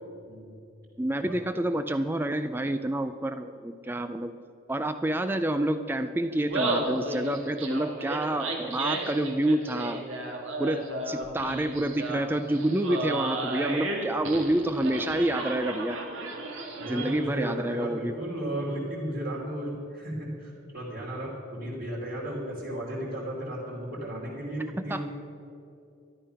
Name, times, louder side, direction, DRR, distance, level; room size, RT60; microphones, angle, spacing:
voice 1, 1.0-4.4 4.7-10.0 10.6-16.0 16.8-18.1 24.8-25.0, right 1 dB, 10° right, 9 dB, 0.3 m, -28 dB
Laughter, 6.3-17.4, right 2 dB, 70° right, 2.0 m, -33 dB
voice 2, 16.8-25.0, right 1 dB, 45° right, -8 dB, 2.9 m, -34 dB
13.0 x 11.5 x 5.7 m, 2.7 s
head